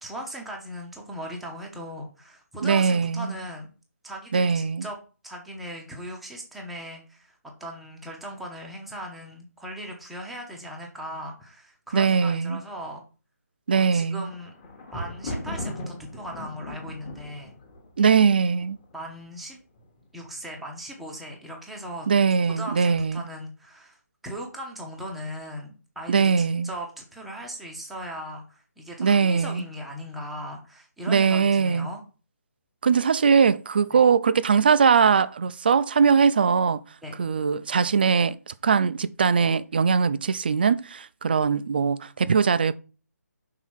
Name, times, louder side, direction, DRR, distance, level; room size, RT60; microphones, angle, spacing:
voice 1, 0.0-3.7 4.0-5.0 5.2-13.0 13.7-14.5 14.9-17.5 18.9-19.6 20.1-22.1 22.6-24.0 24.2-32.0 33.9-34.0 37.0-37.1, equal, ahead, 0.7 m, -38 dB
voice 2, 2.6-3.3 4.3-4.9 11.9-12.6 13.7-14.2 18.0-18.8 22.1-23.2 26.1-26.7 29.0-29.7 31.1-31.9 32.8-36.8 37.2-42.8, right 6 dB, 35° right, 0.3 m, -21 dB
Thunder, 14.0-19.0 19.8-20.3 20.5-20.6, left 1 dB, 20° left, 1.1 m, -38 dB
5.7 x 4.1 x 6.2 m
hypercardioid pair, 170°, 9 cm